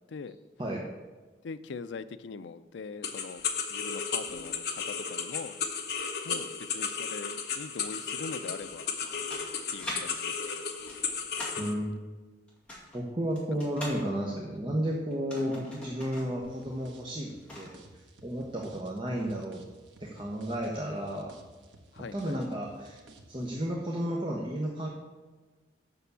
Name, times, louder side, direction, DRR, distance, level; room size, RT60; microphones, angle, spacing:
voice 1, 1.4-3.4 3.7-5.6 6.2-8.8 9.7-10.6 21.9-22.4, left 4 dB, 75° left, 13 dB, 0.4 m, -42 dB
sound 1, 3.0-11.7, left 6 dB, 55° left, 0.9 m, -34 dB
sound 2, 8.8-10.0 10.3-11.7 12.5-14.0 15.1-16.3 16.6-16.7 17.1-17.7, left 1 dB, 5° left, 2.1 m, -42 dB
voice 2, 11.6-11.9 12.9-19.6 20.0-21.3 22.1-24.9, equal, 25° right, -1 dB, 0.9 m, -33 dB
sound 3, 16.4-23.5, right 2 dB, 80° right, 1.1 m, -55 dB
6.9 x 6.1 x 6.8 m, 1.3 s
head